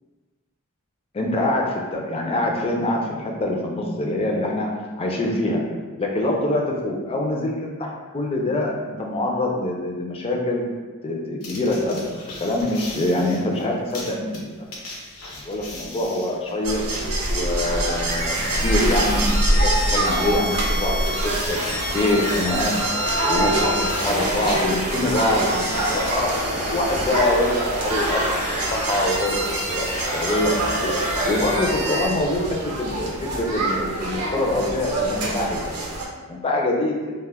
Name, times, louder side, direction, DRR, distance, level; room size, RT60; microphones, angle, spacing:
voice 1, 1.1-4.7 5.0-5.6 6.0-10.6 11.0-14.5 15.4-16.8 17.3-21.0 21.5-21.6 21.9-22.7 23.3-26.3 26.7-28.2 28.7-29.4 29.7-30.5 30.8-30.9 31.2-35.7 36.3-36.9, left 1 dB, 25° left, 0 dB, 0.3 m, -24 dB
sound 1, 11.4-24.6, left 2 dB, 85° left, 0.6 m, -40 dB
sound 2, 16.6-36.1, right 1 dB, 90° right, 0.6 m, -25 dB
sound 3, 18.1-32.1, equal, 35° right, 0.7 m, -29 dB
2.1 x 2.0 x 3.3 m, 1.4 s
head